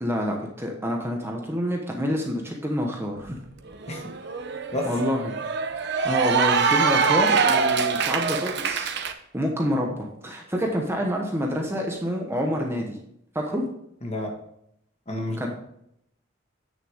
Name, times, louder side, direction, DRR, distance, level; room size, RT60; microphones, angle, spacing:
voice 1, 0.0-3.4 4.9-5.4 6.0-8.9 9.3-13.0 13.3-13.7 15.4-15.5, equal, 10° right, 1 dB, 1.1 m, -27 dB
Cheering / Applause, 3.3-3.4 3.7-9.1, right 5 dB, 60° right, 0.8 m, -24 dB
voice 2, 14.0-14.3 15.1-15.5, left 1 dB, 35° left, 1 dB, 1.7 m, -30 dB
8.8 x 6.7 x 3.6 m, 0.75 s
head